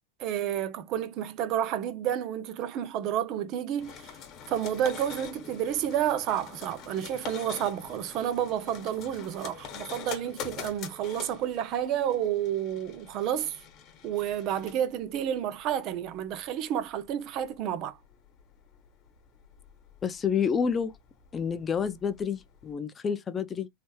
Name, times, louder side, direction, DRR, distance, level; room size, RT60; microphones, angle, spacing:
voice 1, 0.2-4.1 4.5-13.6 14.0-18.0, right 10 dB, 45° right, 0.5 m, -30 dB
sound 1, 3.8-22.7, left 7 dB, 40° left, 0.9 m, -46 dB
voice 2, 20.0-21.0 21.3-23.7, left 6 dB, 20° left, 0.3 m, -29 dB
3.3 x 2.9 x 2.2 m
supercardioid pair, 130°, 0 cm